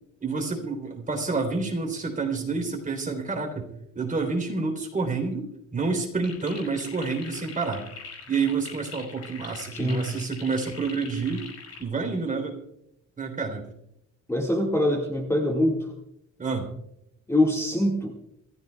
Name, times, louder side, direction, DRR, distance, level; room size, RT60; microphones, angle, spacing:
voice 1, 0.2-3.7 3.9-7.8 8.3-11.5 11.8-12.6 13.2-13.7 16.4-16.7, right 4 dB, 25° right, 3 dB, 3.4 m, -28 dB
sound 1, 6.2-11.8, left 5 dB, 55° left, 5.2 m, -43 dB
voice 2, 9.7-10.0 14.3-15.9 17.3-18.2, left 1 dB, 10° left, -1 dB, 1.9 m, -24 dB
26.5 x 15.0 x 2.3 m, 0.81 s
cardioid pair, 130°, 30 cm